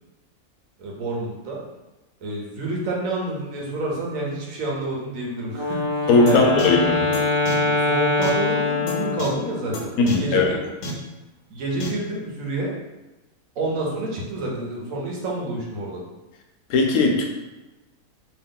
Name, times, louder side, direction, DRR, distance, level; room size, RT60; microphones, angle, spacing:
voice 1, 0.8-1.6 2.2-5.8 6.2-6.5 7.6-10.6 11.5-12.7 13.6-16.0, right 2 dB, 65° right, -2 dB, 1.2 m, -28 dB
Wind instrument woodwind instrument, 5.5-9.6, left 3 dB, 30° right, 0.5 m, -23 dB
voice 2, 6.1-7.1 10.0-10.6 16.7-17.2, left 3 dB, 85° left, 2 dB, 1.1 m, -18 dB
sound 1, 6.3-6.4 6.6-6.7 7.1-7.2 7.5-7.6 8.2-8.3 8.9-9.0 9.2-9.3 9.7-9.8 10.1-10.2 10.8-10.9 11.8-11.9, left 1 dB, 65° left, 0.9 m, -30 dB
2.9 x 2.8 x 3.6 m, 1.1 s
omnidirectional pair, 1.5 m